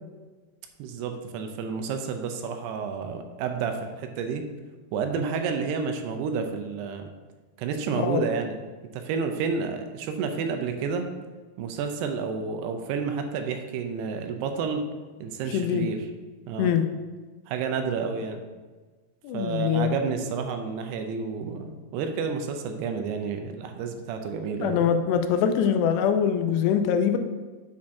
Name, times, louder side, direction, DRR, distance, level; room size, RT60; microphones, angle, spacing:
voice 1, 0.8-4.4 4.9-7.1 7.6-8.6 8.9-11.1 11.6-14.8 15.2-16.0 16.5-16.7 17.5-18.4 19.3-24.9, right 5 dB, 80° right, 6 dB, 2.7 m, -30 dB
voice 2, 15.5-15.9 16.6-16.8 19.2-19.9 24.6-27.2, left 8 dB, 85° left, 7 dB, 2.7 m, -23 dB
8.5 x 4.3 x 4.7 m, 1.3 s
omnidirectional pair, 4.8 m